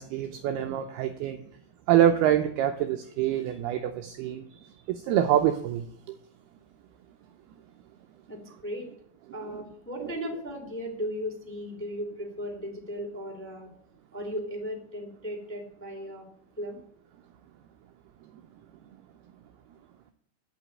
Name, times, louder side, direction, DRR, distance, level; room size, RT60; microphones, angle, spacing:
voice 1, 0.0-1.4 1.9-4.4 4.9-6.2 10.0-10.1, right 11 dB, 85° right, 6 dB, 2.3 m, -25 dB
voice 2, 8.3-8.9 9.3-13.7 14.1-16.2 16.6-16.8, equal, 5° left, 1 dB, 1.7 m, -36 dB
12.5 x 5.9 x 8.8 m, 0.66 s
omnidirectional pair, 5.3 m